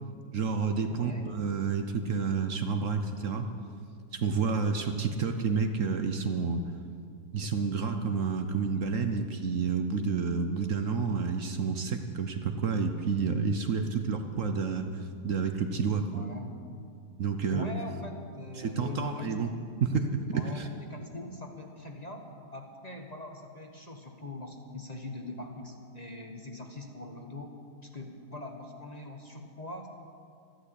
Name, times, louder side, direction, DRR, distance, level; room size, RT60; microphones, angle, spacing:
voice 1, 0.3-3.5 4.1-6.6 7.3-16.3 17.2-17.7 18.6-19.5 19.8-20.7, right 5 dB, 55° right, 6 dB, 1.1 m, -30 dB
voice 2, 0.9-1.3 16.1-16.6 17.3-19.3 20.3-22.3 22.5-27.5 27.9-29.9, left 2 dB, 25° left, 2 dB, 1.2 m, -42 dB
13.5 x 11.5 x 8.3 m, 2.3 s
omnidirectional pair, 1.7 m